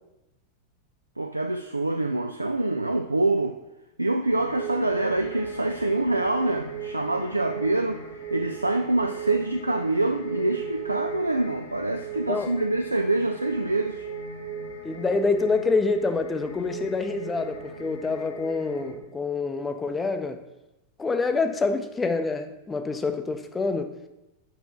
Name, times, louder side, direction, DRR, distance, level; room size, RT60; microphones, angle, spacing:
voice 1, 1.2-3.6 4.0-8.0 8.3-14.1, right 2 dB, 85° right, 0.3 m, -25 dB
sound 1, 4.3-18.9, right 5 dB, 75° left, 1.2 m, -37 dB
voice 2, 14.8-20.4 21.0-23.9, left 4 dB, 15° left, 0.6 m, -26 dB
5.5 x 4.7 x 6.1 m
figure-of-eight pair, 90°, 0 cm